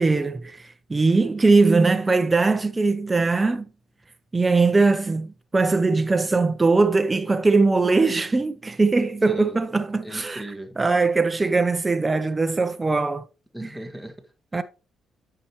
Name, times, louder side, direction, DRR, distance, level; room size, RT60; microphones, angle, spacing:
voice 1, 0.0-3.7 4.3-10.4 10.8-13.2 13.6-13.7 14.5-14.6, right 3 dB, 20° right, 0.6 m, -21 dB
voice 2, 9.2-9.7 10.0-10.8 13.5-14.6, right 1 dB, 5° left, 1.5 m, -38 dB
8.9 x 5.8 x 2.9 m
cardioid pair, 90°, 0 cm